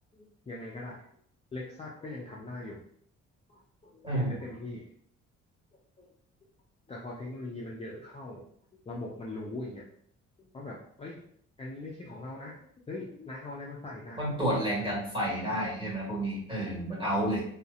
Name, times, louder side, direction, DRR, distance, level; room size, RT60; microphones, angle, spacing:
voice 1, 0.1-1.0 1.5-2.8 3.5-4.9 6.0-6.1 6.9-8.4 8.7-9.9 10.4-11.2 11.6-12.6 12.9-14.2 15.4-15.7, left 2 dB, 20° left, -4 dB, 0.4 m, -41 dB
voice 2, 4.0-4.4 14.2-17.4, right 1 dB, 15° right, -5 dB, 1.3 m, -30 dB
2.6 x 2.0 x 2.4 m, 0.64 s
cardioid pair, 90°, 30 cm